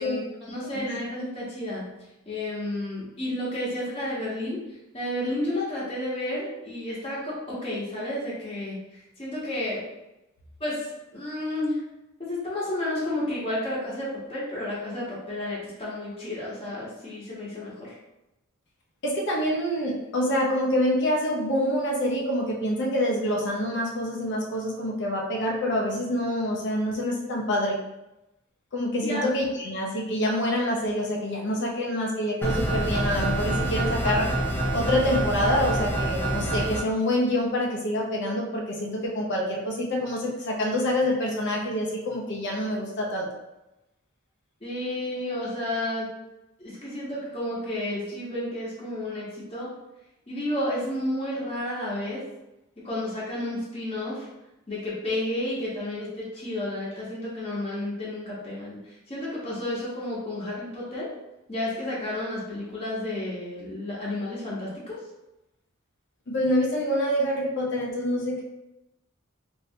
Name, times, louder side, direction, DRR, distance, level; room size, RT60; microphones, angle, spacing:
voice 1, 0.0-1.9 2.3-4.6 4.9-8.8 9.2-9.8 10.6-10.9 11.1-11.8 12.2-18.0 29.0-29.3 44.6-46.1 46.6-49.7 50.3-52.2 52.8-54.3 54.7-61.1 61.5-65.0, left 1 dB, 30° left, -8 dB, 1.1 m, -31 dB
voice 2, 19.0-27.8 28.7-34.3 34.7-43.3 66.3-68.4, left 1 dB, 60° left, -2 dB, 0.7 m, -26 dB
sound 1, 32.4-36.8, right 1 dB, 10° left, 0.5 m, -26 dB
3.2 x 2.7 x 2.7 m, 0.94 s
head